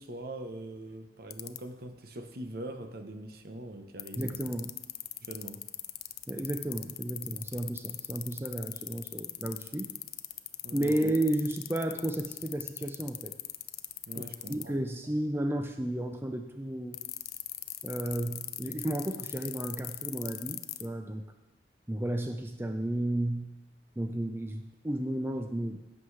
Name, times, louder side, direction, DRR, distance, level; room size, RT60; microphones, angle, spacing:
voice 1, 0.0-4.5 5.2-5.6 10.6-11.0 14.1-14.7, right 1 dB, 60° right, 0.9 m, -42 dB
sound 1, 1.3-1.6 4.0-14.6 16.9-20.9, left 16 dB, 60° left, 0.5 m, -38 dB
voice 2, 4.2-4.8 6.3-9.9 10.7-13.4 14.2-14.3 14.5-17.0 17.8-21.2 21.9-23.6 24.0-25.8, right 1 dB, 15° right, 0.5 m, -33 dB
16.5 x 7.6 x 3.3 m
head